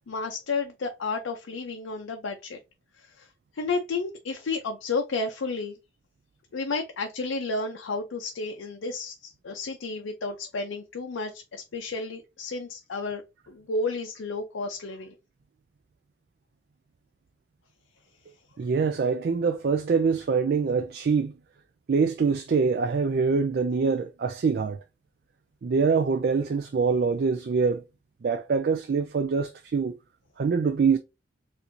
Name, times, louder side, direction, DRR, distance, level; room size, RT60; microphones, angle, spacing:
voice 1, 0.1-2.6 3.2-3.3 3.6-5.8 6.5-13.2 13.5-15.2, left 3 dB, 85° left, 0.5 m, -32 dB
voice 2, 18.6-21.3 21.9-24.8 25.6-27.8 28.2-29.9 30.4-31.0, right 5 dB, 55° right, 0.3 m, -24 dB
4.4 x 2.5 x 2.6 m
head